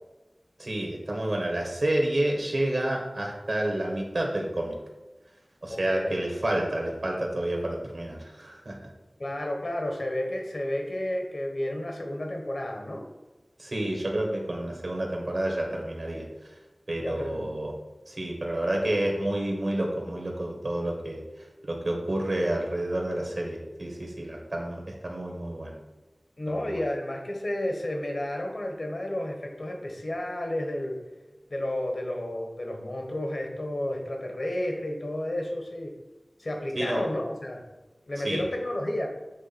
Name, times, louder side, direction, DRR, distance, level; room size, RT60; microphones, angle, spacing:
voice 1, 0.6-4.8 5.6-8.8 13.6-16.5 16.9-17.7 18.1-21.2 21.7-25.7 26.5-26.8 36.7-37.0 38.2-38.4, right 1 dB, 70° right, -1 dB, 1.4 m, -29 dB
voice 2, 5.7-6.2 9.2-13.0 17.0-17.5 26.4-31.0 31.5-35.9 36.4-37.6 38.1-39.1, left 1 dB, 70° left, 2 dB, 1.2 m, -31 dB
7.4 x 3.2 x 4.2 m, 1.1 s
wide cardioid pair, 60°, 0 cm